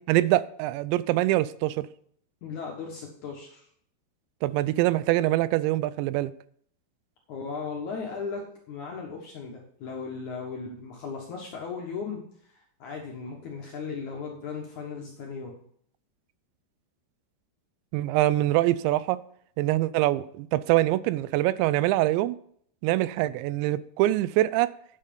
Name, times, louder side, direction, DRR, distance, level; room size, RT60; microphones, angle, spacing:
voice 1, 0.1-1.9 4.4-6.3 17.9-19.2 19.6-22.4 22.8-24.7, right 16 dB, 85° right, 2.8 m, -24 dB
voice 2, 2.4-3.7 7.3-15.6, left 5 dB, 65° left, 2.0 m, -37 dB
9.8 x 7.3 x 5.3 m
omnidirectional pair, 5.1 m